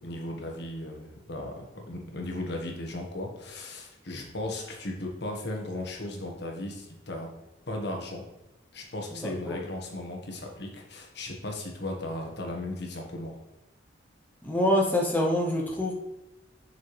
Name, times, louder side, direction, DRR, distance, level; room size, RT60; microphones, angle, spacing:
voice 1, 0.0-7.3 7.7-8.2 8.7-13.4, left 1 dB, 65° left, 1 dB, 1.5 m, -36 dB
voice 2, 9.2-9.6 14.4-15.9, left 1 dB, 10° left, -2 dB, 0.8 m, -25 dB
7.3 x 6.0 x 3.3 m, 0.97 s
head